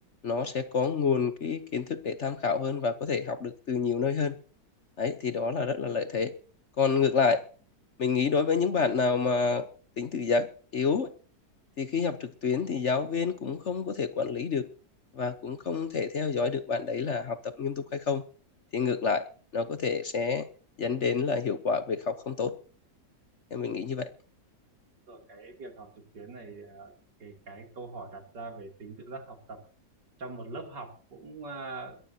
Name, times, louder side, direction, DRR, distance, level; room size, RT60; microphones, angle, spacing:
voice 1, 0.2-4.3 5.0-6.3 6.8-7.4 8.0-9.7 10.0-11.1 11.8-14.7 15.1-18.2 18.7-19.2 19.5-20.5 20.8-22.5 23.5-24.1, left 5 dB, 50° left, 10 dB, 1.1 m, -28 dB
voice 2, 25.1-25.9 26.1-26.9 27.2-29.6 30.2-32.0, right 3 dB, 75° right, 3 dB, 3.6 m, -42 dB
21.5 x 15.0 x 2.8 m, 0.40 s
omnidirectional pair, 1.9 m